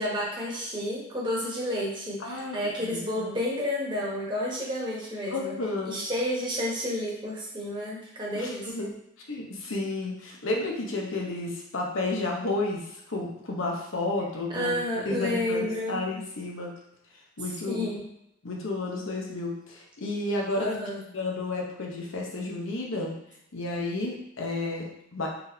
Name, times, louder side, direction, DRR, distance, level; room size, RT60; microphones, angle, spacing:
voice 1, 0.0-5.5 5.8-8.9 14.5-16.0 17.7-18.0 20.6-21.0, left 1 dB, 25° right, -4 dB, 1.1 m, -30 dB
voice 2, 2.2-2.6 2.8-3.3 5.3-6.0 8.3-8.9 9.3-14.8 15.1-16.8 17.4-17.9 18.4-20.7 21.1-23.2 23.5-25.3, left 2 dB, 70° left, -1 dB, 0.9 m, -31 dB
4.3 x 3.5 x 2.7 m, 0.80 s
head